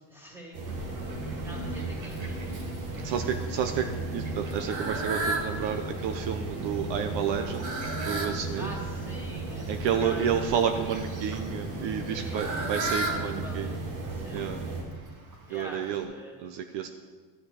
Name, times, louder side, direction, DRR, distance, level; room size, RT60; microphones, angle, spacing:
voice 1, 0.1-0.9 1.4-2.7 8.6-10.2 12.1-13.8 14.1-14.9 15.5-16.4, equal, 5° right, -2 dB, 2.6 m, -45 dB
sound 1, 0.5-14.8, right 2 dB, 90° right, 2.1 m, -35 dB
Fowl, 0.7-16.0, right 2 dB, 40° right, 1.8 m, -38 dB
voice 2, 3.0-8.7 9.7-13.8 14.3-14.6 15.5-16.1 16.4-16.9, right 8 dB, 65° right, 6 dB, 0.8 m, -30 dB
12.5 x 6.2 x 4.9 m, 1.4 s
cardioid pair, 100°, 47 cm